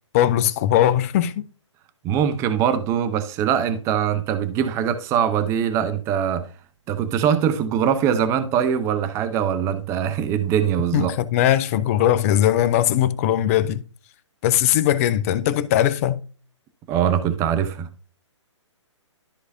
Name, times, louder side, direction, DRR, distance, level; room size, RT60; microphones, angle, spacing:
voice 1, 0.1-1.5 10.9-13.8 14.4-16.2, left 11 dB, 30° left, 0.6 m, -20 dB
voice 2, 2.0-6.5 6.9-11.1 16.9-17.9, right 8 dB, 20° right, 0.8 m, -22 dB
13.0 x 4.8 x 2.7 m
figure-of-eight pair, 130°, 16 cm